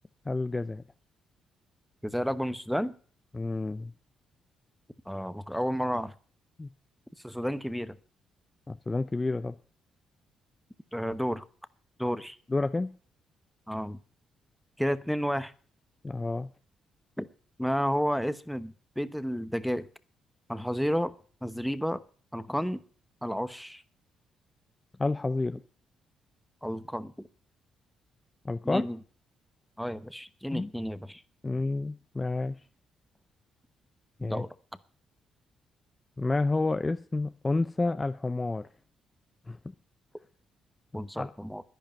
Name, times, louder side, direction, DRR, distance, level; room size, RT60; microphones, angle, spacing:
voice 1, 0.3-0.8 3.3-3.9 6.6-6.7 8.7-9.6 12.5-12.9 16.0-16.5 25.0-25.6 28.4-28.8 30.5-30.7 31.4-32.6 34.2-34.4 36.2-38.6 39.5-39.7 41.2-41.3, left 3 dB, 20° left, 11 dB, 0.6 m, -29 dB
voice 2, 2.0-2.9 5.1-6.1 7.2-8.0 10.9-11.4 12.0-12.4 13.7-14.0 14.8-15.5 17.2-17.3 17.6-19.9 20.5-21.1 21.4-22.0 22.3-22.8 23.2-23.8 26.6-27.3 28.6-29.0 29.8-31.2 34.2-34.5 40.9-41.6, equal, ahead, 13 dB, 1.0 m, -31 dB
10.5 x 10.5 x 8.9 m, 0.43 s
cardioid pair, 90°, 0 cm